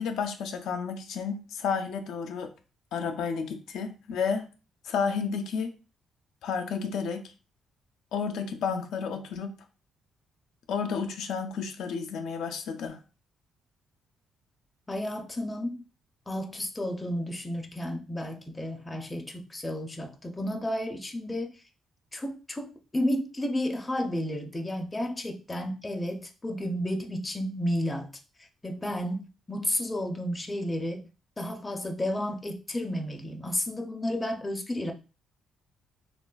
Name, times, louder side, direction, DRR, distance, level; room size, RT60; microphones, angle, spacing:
voice 1, 0.0-2.5 2.9-4.5 4.9-5.7 6.4-7.3 8.1-9.5 10.7-13.0, left 6 dB, 80° left, 0.4 m, -31 dB
voice 2, 14.9-15.8 16.3-21.5 22.1-28.1 28.6-31.1 31.4-34.9, left 1 dB, 15° left, 0.5 m, -32 dB
3.2 x 2.3 x 2.2 m
cardioid pair, 90°, 0 cm